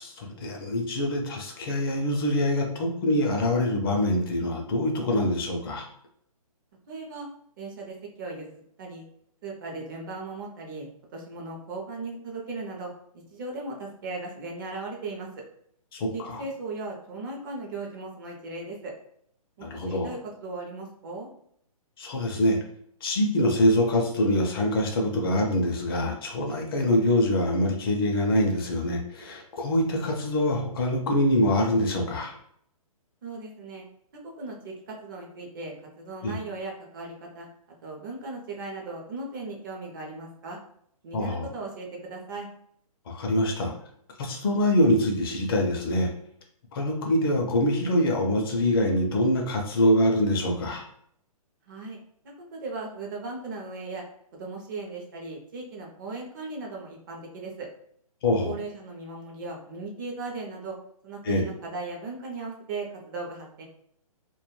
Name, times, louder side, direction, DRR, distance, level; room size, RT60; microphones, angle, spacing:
voice 1, 0.0-5.9 15.9-16.4 19.6-20.1 22.0-22.6 23.0-32.4 36.2-36.3 41.1-41.5 43.1-43.7 44.2-46.1 46.7-50.8 58.2-58.5 61.2-61.4, left 1 dB, 40° left, 1 dB, 0.5 m, -24 dB
voice 2, 6.9-7.3 7.6-9.0 9.4-12.9 13.3-15.3 16.1-18.9 19.6-21.3 33.2-33.8 34.1-37.5 37.8-40.6 41.0-42.5 51.7-52.0 52.5-54.0 54.3-57.7 58.4-60.8 61.0-63.6, right 3 dB, 35° right, -1 dB, 0.5 m, -37 dB
2.2 x 2.1 x 3.0 m, 0.68 s
hypercardioid pair, 145°, 19 cm